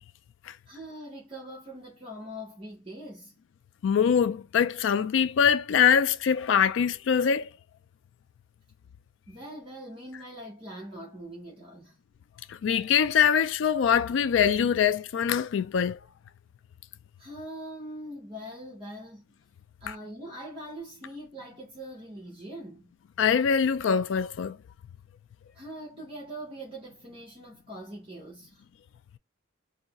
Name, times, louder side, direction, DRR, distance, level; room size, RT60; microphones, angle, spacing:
voice 1, 0.7-3.3 9.3-12.0 17.2-19.2 19.8-22.9 25.5-28.6, right 1 dB, 25° right, 0.7 m, -42 dB
voice 2, 3.8-7.5 12.5-16.0 23.2-24.6, left 7 dB, 65° left, 0.3 m, -23 dB
2.7 x 2.3 x 3.9 m
head